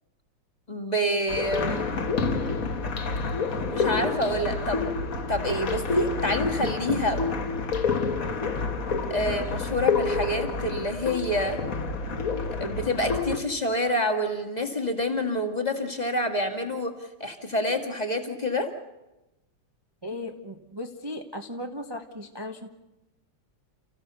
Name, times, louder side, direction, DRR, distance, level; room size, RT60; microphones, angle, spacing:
voice 1, 0.7-1.8 3.7-4.8 5.3-7.2 9.1-11.6 12.6-16.9 17.2-18.7, left 1 dB, 20° left, 5 dB, 1.7 m, -27 dB
sound 1, 1.3-13.4, left 4 dB, 45° left, 1.6 m, -28 dB
voice 2, 20.0-22.7, left 1 dB, 20° right, 3 dB, 0.7 m, -37 dB
30.0 x 15.0 x 6.8 m, 1.0 s
omnidirectional pair, 2.4 m